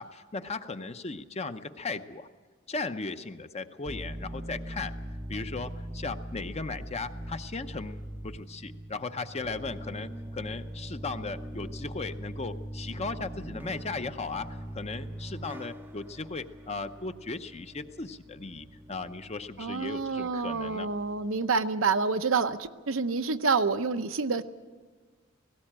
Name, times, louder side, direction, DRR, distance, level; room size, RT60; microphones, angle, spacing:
voice 1, 0.0-2.3 2.7-4.9 5.3-20.9, left 3 dB, 30° left, 9 dB, 0.8 m, -37 dB
sound 1, 3.9-21.3, right 1 dB, 10° right, 0.6 m, -42 dB
voice 2, 19.6-24.4, right 4 dB, 80° right, 9 dB, 0.8 m, -28 dB
18.0 x 17.0 x 8.8 m, 1.4 s
head